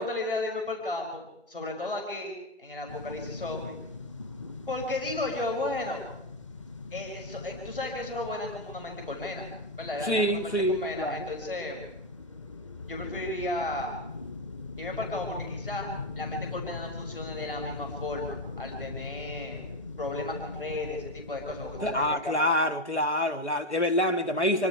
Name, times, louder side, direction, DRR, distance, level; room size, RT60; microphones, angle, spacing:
voice 1, 0.0-3.8 4.7-6.0 6.9-9.5 9.8-11.8 12.9-13.9 14.8-15.9 16.2-19.7 20.0-22.4, left 2 dB, 55° left, 6.5 m, -34 dB
sound 1, 2.9-22.2, left 4 dB, 30° left, 1.8 m, -41 dB
voice 2, 10.0-11.2 21.8-24.7, equal, 80° left, 2.5 m, -26 dB
26.0 x 25.5 x 4.8 m
figure-of-eight pair, 165°, 33 cm